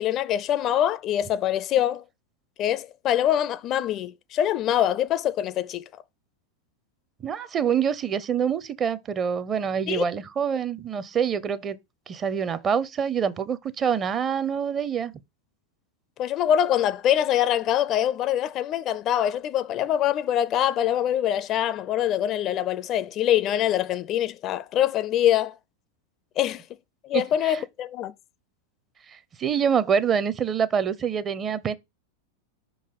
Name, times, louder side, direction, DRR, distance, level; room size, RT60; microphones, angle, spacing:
voice 1, 0.0-2.0 2.6-5.8 9.9-10.0 16.2-25.5 26.4-26.6 27.0-28.1, left 11 dB, 35° left, 0.4 m, -24 dB
voice 2, 7.2-11.8 12.1-15.1 27.1-27.6 29.1-31.7, right 7 dB, 25° right, 0.6 m, -26 dB
5.6 x 3.9 x 4.7 m
figure-of-eight pair, 90°, 0 cm